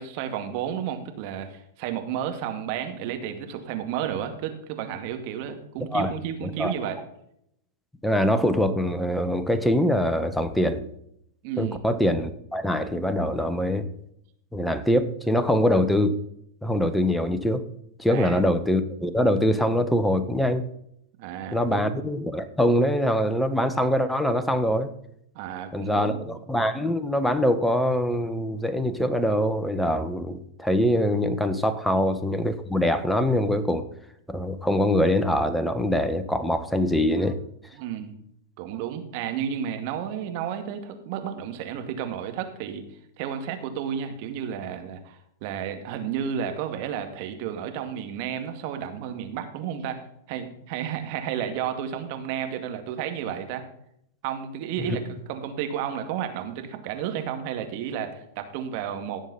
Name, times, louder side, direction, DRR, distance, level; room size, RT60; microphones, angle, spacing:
voice 1, 0.0-7.0 11.4-11.8 18.1-18.4 21.2-21.9 25.3-26.4 37.2-37.3 37.7-38.2 38.6-50.0 50.3-53.6 54.2-59.3, right 9 dB, 50° right, 6 dB, 2.3 m, -32 dB
voice 2, 8.0-10.8 11.6-13.9 14.5-16.2 16.6-17.6 18.0-20.6 21.5-24.9 25.7-33.8 34.3-37.4 54.9-55.0, equal, 5° left, 10 dB, 1.3 m, -23 dB
17.0 x 7.2 x 4.2 m, 0.74 s
hypercardioid pair, 105°, 0 cm